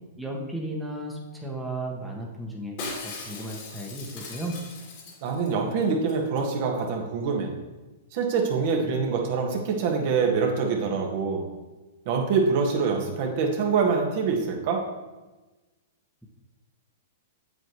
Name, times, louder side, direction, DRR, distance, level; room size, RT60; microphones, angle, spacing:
voice 1, 0.2-4.6, right 1 dB, ahead, -3 dB, 1.3 m, -34 dB
Shatter, 2.8-5.5 5.8-5.9 6.1-6.5 6.8-6.9, left 3 dB, 50° left, 2.5 m, -39 dB
voice 2, 5.2-7.5 8.1-11.5 12.0-14.8, right 5 dB, 50° right, 1 dB, 1.5 m, -25 dB
7.9 x 7.7 x 3.1 m, 1.1 s
hypercardioid pair, 110°, 0 cm